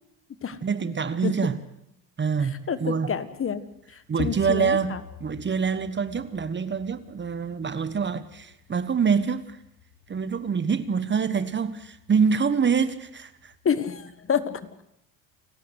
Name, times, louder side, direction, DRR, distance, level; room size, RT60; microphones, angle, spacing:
voice 1, 0.6-1.6 2.2-3.1 4.1-9.6 10.1-13.5, right 6 dB, 25° right, 1.3 m, -25 dB
voice 2, 2.4-3.6 3.9-5.0 13.6-14.6, left 7 dB, 30° left, 1.5 m, -28 dB
sound 1, 3.4-14.6, left 7 dB, 70° left, 3.9 m, -47 dB
29.0 x 13.0 x 8.1 m
supercardioid pair, 90°, 42 cm